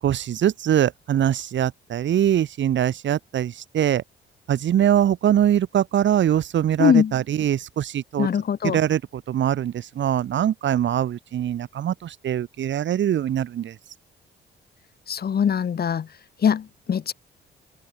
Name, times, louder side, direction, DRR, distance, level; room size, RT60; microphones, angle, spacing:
voice 1, 0.0-4.0 4.5-8.3 8.6-13.8, right 10 dB, 70° right, 6.7 m, -22 dB
voice 2, 6.8-7.1 8.2-8.8 15.1-16.1 16.4-17.1, left 8 dB, 50° left, 3.8 m, -22 dB
cardioid pair, 90°, 20 cm